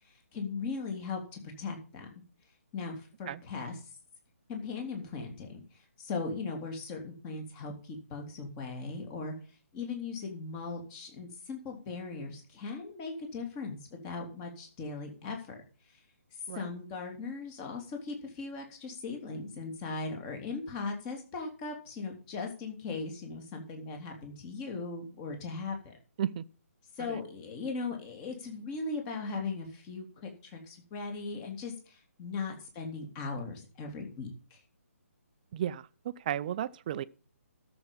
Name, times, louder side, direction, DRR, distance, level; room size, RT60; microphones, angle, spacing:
voice 1, 0.3-2.1 2.7-3.8 4.5-5.6 6.0-9.3 9.7-13.8 14.0-15.6 16.5-26.0 27.0-34.6, left 4 dB, 25° left, 3.1 m, -38 dB
voice 2, 36.3-37.0, right 10 dB, 35° right, 0.6 m, -32 dB
13.0 x 7.1 x 5.5 m
figure-of-eight pair, 140°, 8 cm